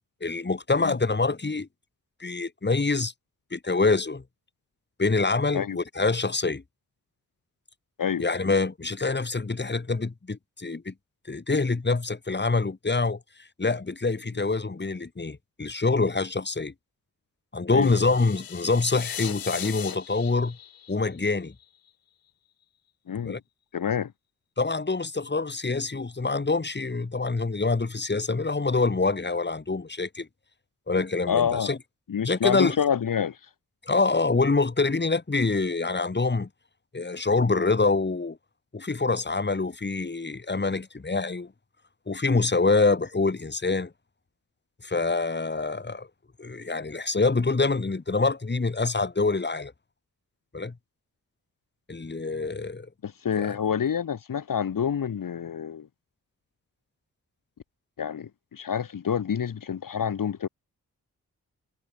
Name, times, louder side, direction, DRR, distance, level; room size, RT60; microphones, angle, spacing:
voice 1, 0.2-1.7 2.2-3.1 3.5-4.2 5.0-6.6 8.2-10.9 11.3-13.2 13.6-16.7 17.5-20.6 20.9-21.5 23.2-23.4 24.6-30.3 30.9-31.8 32.2-32.8 33.8-36.5 36.9-38.4 38.7-41.5 42.1-43.9 44.8-46.1 46.4-49.7 50.5-50.7 51.9-52.9 53.4-53.5, left 3 dB, 30° left, 3.2 m, -25 dB
voice 2, 17.7-18.0 23.1-23.4 23.7-24.1 31.3-31.7 32.1-33.4 53.0-55.9 58.0-60.5, left 8 dB, 65° left, 2.1 m, -27 dB
sound 1, 17.8-21.9, left 10 dB, 80° left, 1.6 m, -39 dB
cardioid pair, 55°, 35 cm